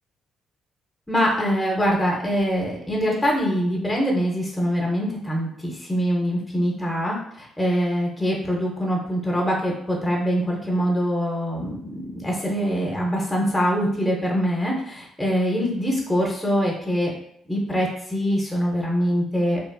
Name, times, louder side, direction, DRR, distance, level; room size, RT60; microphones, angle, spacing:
voice 1, 1.1-17.1 17.5-19.7, equal, 10° left, -2 dB, 0.6 m, -24 dB
2.9 x 2.3 x 2.2 m, 0.71 s
cardioid pair, 90°, 0 cm